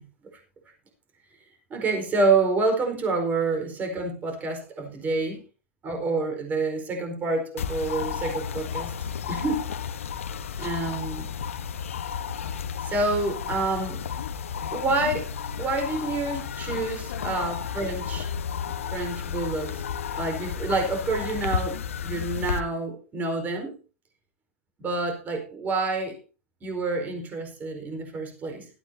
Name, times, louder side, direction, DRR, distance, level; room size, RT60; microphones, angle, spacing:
voice 1, 1.7-5.4 5.8-8.9 9.3-9.6 10.6-11.2 12.8-14.0 14.7-15.3 15.6-18.3 18.9-19.8 20.2-23.7 24.8-26.1 26.6-28.7, right 3 dB, 25° right, 5 dB, 4.5 m, -27 dB
sound 1, 7.6-22.6, left 7 dB, 80° left, 1.2 m, -32 dB
17.0 x 13.5 x 2.8 m, 0.33 s
hypercardioid pair, 120°, 7 cm